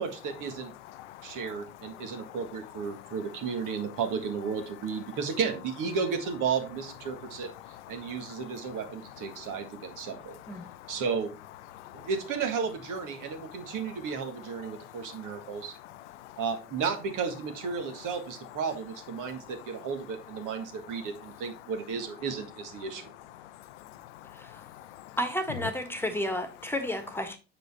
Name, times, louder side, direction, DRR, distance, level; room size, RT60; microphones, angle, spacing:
voice 1, 0.0-0.7 1.2-7.5 7.9-10.4 10.9-11.3 11.9-15.7 16.4-23.1, right 6 dB, 60° right, 1.7 m, -33 dB
voice 2, 0.9-2.4 2.9-3.1 7.1-7.2 7.6-8.8 9.3-11.0 11.7-12.1 13.4-13.7 14.6-16.4 19.2-19.5 20.6-20.7 23.4-25.2, left 14 dB, 85° left, 0.5 m, -48 dB
voice 3, 24.3-24.6 25.2-27.4, equal, 5° left, 1.5 m, -32 dB
7.0 x 5.0 x 4.1 m
hypercardioid pair, 60°, 35 cm